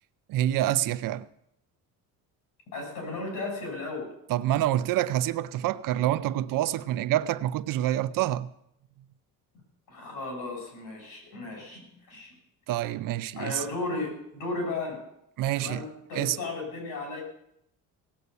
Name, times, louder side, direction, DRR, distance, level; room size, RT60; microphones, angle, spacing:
voice 1, 0.3-1.3 4.3-8.5 12.7-13.6 15.4-15.8 16.1-16.4, right 13 dB, 65° right, 0.7 m, -27 dB
voice 2, 2.7-4.1 9.9-12.3 13.3-15.0 15.5-17.2, left 2 dB, 70° left, 6.8 m, -35 dB
18.0 x 8.0 x 6.9 m
cardioid pair, 140°, 35 cm